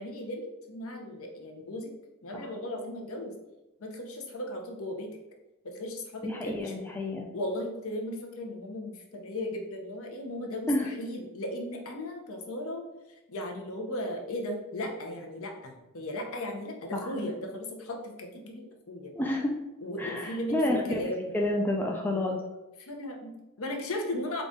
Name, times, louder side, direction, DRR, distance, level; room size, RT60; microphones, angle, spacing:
voice 1, 0.0-1.9 2.2-3.3 3.8-5.1 5.6-6.8 7.3-12.8 13.3-19.1 19.8-21.4 22.1-22.4 22.8-24.4, left 1 dB, 65° left, 2 dB, 0.7 m, -36 dB
voice 2, 6.2-7.3 10.7-10.9 16.9-17.1 19.2-19.5 20.0-21.0 21.3-22.4, left 1 dB, 10° left, 0 dB, 0.4 m, -29 dB
3.9 x 2.4 x 3.6 m, 0.96 s
head